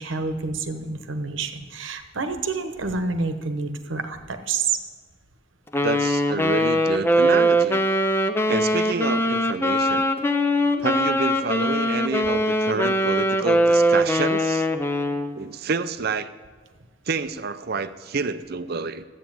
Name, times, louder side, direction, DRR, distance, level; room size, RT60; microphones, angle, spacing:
voice 1, 0.0-4.8, right 4 dB, 60° right, 8 dB, 1.0 m, -28 dB
Wind instrument woodwind instrument, 5.7-15.3, equal, 10° left, 0.5 m, -21 dB
voice 2, 5.8-7.8 8.5-10.1 10.8-14.7 15.3-16.3 17.1-19.0, right 4 dB, 45° right, 12 dB, 0.5 m, -28 dB
13.0 x 8.3 x 7.7 m, 1.5 s
head